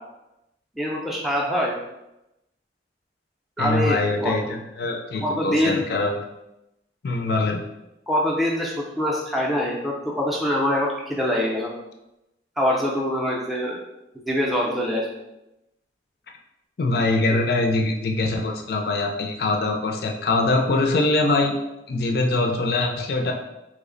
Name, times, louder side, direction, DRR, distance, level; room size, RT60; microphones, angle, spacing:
voice 1, 0.8-1.7 3.6-4.3 5.2-5.8 8.1-11.7 12.6-13.8 14.3-15.1, equal, ahead, -3 dB, 0.4 m, -24 dB
voice 2, 3.6-6.2 7.0-7.6 16.8-21.5 21.9-23.3, left 2 dB, 60° left, 3 dB, 0.4 m, -23 dB
3.2 x 2.1 x 3.7 m, 0.91 s
head